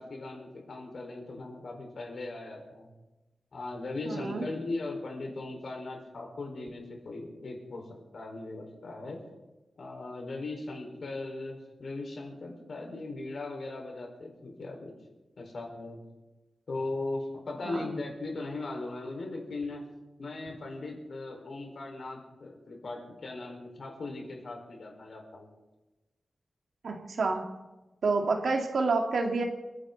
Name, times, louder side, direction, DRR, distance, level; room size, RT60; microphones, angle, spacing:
voice 1, 0.0-2.9 3.5-7.8 8.1-9.2 9.8-14.9 15.4-16.0 16.7-19.8 20.2-25.5, left 2 dB, 65° left, 1 dB, 4.6 m, -38 dB
voice 2, 4.0-4.4 17.6-17.9 26.8-27.4 28.0-29.4, right 3 dB, 80° right, 3 dB, 2.3 m, -28 dB
29.5 x 10.0 x 4.0 m, 1.1 s
wide cardioid pair, 105°, 0 cm